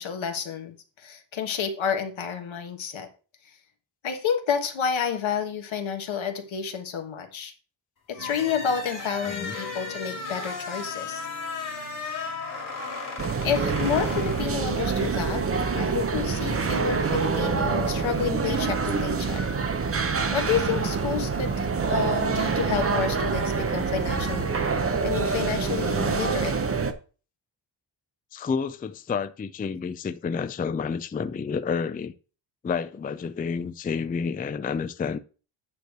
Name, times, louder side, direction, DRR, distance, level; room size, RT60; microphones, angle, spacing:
voice 1, 0.0-3.1 3.4-3.5 4.0-7.5 8.1-11.3 13.4-15.4 15.7-19.4 20.3-26.6, left 7 dB, 80° left, 1.5 m, -30 dB
sound 1, 8.1-15.1, left 5 dB, 40° left, 1.8 m, -36 dB
sound 2, 8.1-13.3, right 4 dB, 80° right, 4.4 m, -45 dB
voice 2, 9.2-9.6 28.3-32.1 32.6-35.2, left 5 dB, 20° left, 0.3 m, -30 dB
sound 3, 13.2-26.9, right 5 dB, 30° right, 0.8 m, -26 dB
9.2 x 3.2 x 6.6 m
wide cardioid pair, 160°, 46 cm